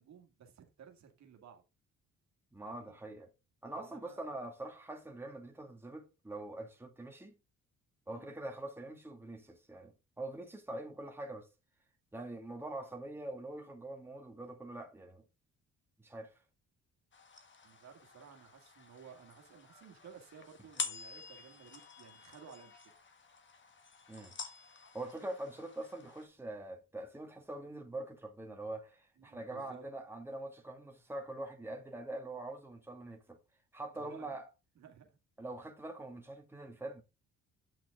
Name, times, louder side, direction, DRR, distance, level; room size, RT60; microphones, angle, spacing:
voice 1, 0.0-1.6 2.6-2.9 3.7-4.2 8.1-8.4 10.7-10.8 17.6-22.8 29.2-29.8 33.9-34.4 34.8-35.2, right 6 dB, 65° right, 1.9 m, -56 dB
voice 2, 2.5-3.3 3.6-7.3 8.1-11.5 12.1-15.2 16.0-16.4 24.1-24.4 24.9-33.4 33.7-34.5 35.4-37.0, right 2 dB, 10° right, 1.9 m, -44 dB
sound 1, 17.1-26.2, left 5 dB, 40° left, 1.6 m, -48 dB
8.8 x 5.9 x 3.6 m
cardioid pair, 90°, 30 cm